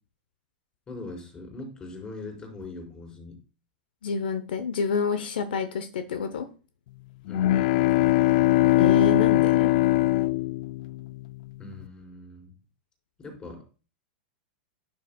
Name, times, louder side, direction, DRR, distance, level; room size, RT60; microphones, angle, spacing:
voice 1, 0.9-3.4 7.2-7.6 11.6-12.5 13.2-13.6, left 2 dB, 20° left, 1 dB, 4.7 m, -41 dB
voice 2, 4.0-6.5 8.8-9.7, left 5 dB, 85° left, 9 dB, 0.9 m, -28 dB
sound 1, 7.3-11.3, left 17 dB, 65° left, 0.3 m, -21 dB
11.5 x 6.7 x 2.3 m, 0.35 s
hypercardioid pair, 125°, 5 cm